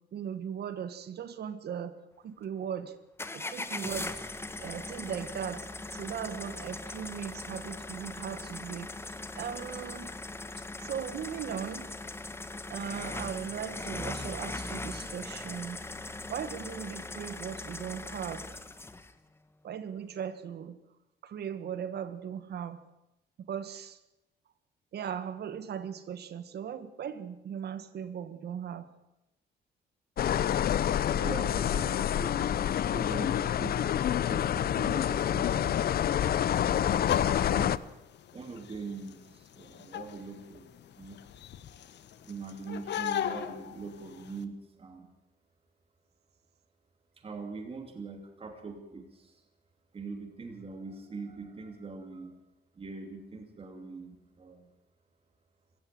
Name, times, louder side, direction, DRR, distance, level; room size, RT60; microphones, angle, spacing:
voice 1, 0.1-2.0 2.2-2.9 3.3-8.9 9.3-10.1 10.8-11.9 12.7-15.8 16.3-18.4 19.6-20.8 21.2-22.8 23.4-24.0 24.9-28.9, right 8 dB, 65° right, 13 dB, 1.7 m, -38 dB
sound 1, 3.2-19.1, left 2 dB, 15° left, 1.2 m, -40 dB
sound 2, 30.2-37.8, left 10 dB, 55° left, 0.7 m, -27 dB
voice 2, 31.2-32.3 32.9-35.8 36.6-37.7 38.3-40.7 41.0-41.2 42.2-45.1 47.2-49.4 49.9-52.4 52.7-54.7, right 4 dB, 30° right, 5 dB, 2.8 m, -42 dB
sound 3, 36.9-44.4, left 10 dB, 75° left, 1.5 m, -38 dB
26.0 x 15.5 x 7.8 m, 0.94 s
cardioid pair, 135°, 18 cm